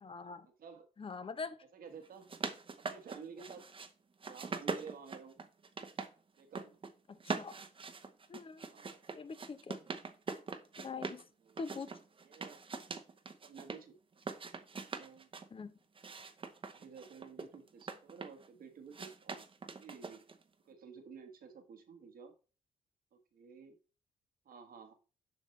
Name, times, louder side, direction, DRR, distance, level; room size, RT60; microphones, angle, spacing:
voice 1, 0.0-0.5 1.0-1.6 7.1-7.6 8.3-8.6 9.1-9.8 10.8-11.2 11.6-11.9 15.5-15.7, left 4 dB, 35° left, 0.8 m, -43 dB
voice 2, 1.7-2.3 2.9-3.7 4.3-5.4 6.4-6.8 8.7-8.9 11.4-11.6 12.2-12.6 13.4-13.9 14.5-15.3 16.7-19.4 19.8-20.2 20.6-22.3 23.3-23.7 24.4-24.9, right 6 dB, 75° right, 1.4 m, -52 dB
sound 1, 2.0-3.9 4.2-6.1 6.4-6.9 7.2-11.2 11.6-13.8 14.2-15.5 16.0-18.5 18.9-20.4, right 4 dB, 35° right, 0.8 m, -43 dB
7.3 x 5.2 x 3.2 m
cardioid pair, 85°, 15 cm